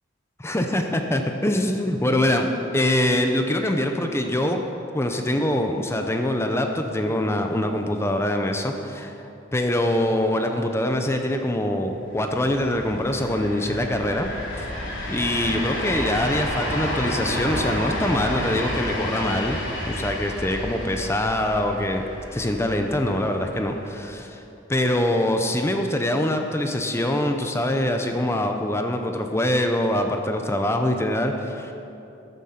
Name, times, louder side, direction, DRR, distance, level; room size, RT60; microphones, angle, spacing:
voice 1, 0.4-2.5 2.7-4.6 4.9-14.3 14.6-14.7 15.1-19.6 19.9-22.0 22.3-24.4 24.7-31.7, left 1 dB, 15° left, 4 dB, 0.7 m, -24 dB
sound 1, 12.1-24.1, left 1 dB, 80° left, 3.4 m, -31 dB
14.0 x 9.4 x 5.8 m, 2.8 s
head